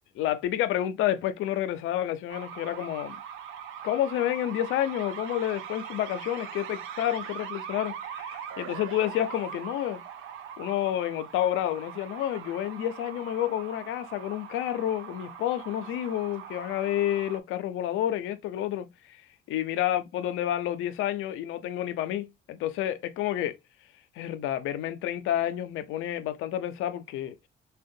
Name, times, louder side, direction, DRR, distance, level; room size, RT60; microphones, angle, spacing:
voice 1, 0.1-3.2 3.8-10.0 10.6-23.6 24.1-27.4, left 12 dB, 90° left, 0.5 m, -29 dB
sound 1, 2.3-17.4, right 8 dB, 90° right, 0.5 m, -41 dB
3.5 x 2.2 x 2.6 m
cardioid pair, 90°, 20 cm